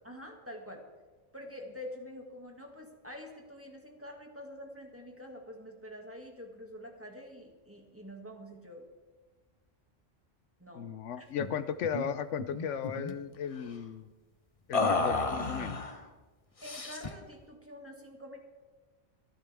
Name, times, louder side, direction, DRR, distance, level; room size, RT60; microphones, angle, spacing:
voice 1, 0.0-0.9 1.3-8.9 10.6-11.3 16.6-18.4, left 1 dB, 10° right, 1 dB, 2.1 m, -46 dB
voice 2, 10.7-14.1 14.7-15.8, left 7 dB, 80° left, 13 dB, 1.0 m, -35 dB
sound 1, 11.4-11.6 11.8-12.1 12.4-13.1 14.7-16.0 16.6-17.2, left 3 dB, 30° left, 1.0 m, -32 dB
26.5 x 11.5 x 3.5 m, 1.3 s
omnidirectional pair, 1.2 m